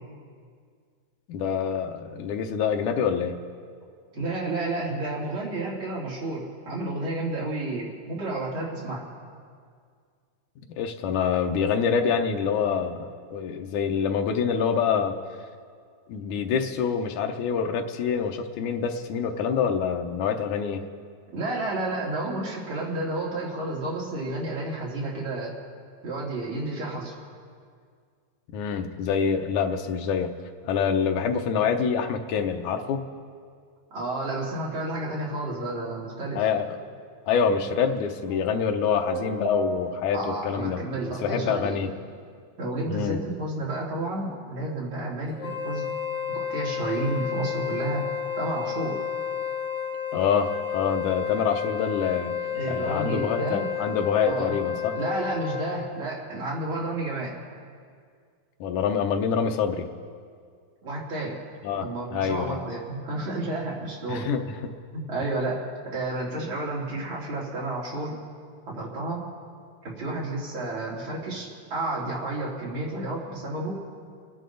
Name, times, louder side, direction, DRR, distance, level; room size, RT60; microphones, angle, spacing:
voice 1, 1.3-3.4 10.8-15.2 16.1-20.8 28.5-30.3 30.6-33.0 36.4-36.8 37.3-40.8 41.2-41.9 42.9-43.2 50.1-52.3 52.7-55.0 58.6-59.9 61.6-61.9 62.1-62.6 64.1-64.7, left 6 dB, 90° left, 4 dB, 2.3 m, -26 dB
voice 2, 4.1-9.0 21.3-25.5 26.0-27.1 33.9-36.5 40.1-41.8 42.6-45.9 46.3-48.1 48.4-49.0 52.5-53.7 54.2-54.5 54.9-57.4 60.8-61.4 61.8-64.3 64.9-65.6 65.9-68.2 68.7-69.3 69.8-73.8, right 2 dB, 45° right, -5 dB, 3.4 m, -31 dB
sound 1, 38.3-40.3, equal, 20° left, 2.8 m, -32 dB
Wind instrument woodwind instrument, 45.3-55.9, left 8 dB, 40° left, 1.9 m, -31 dB
28.5 x 10.5 x 3.9 m, 2.1 s
omnidirectional pair, 3.4 m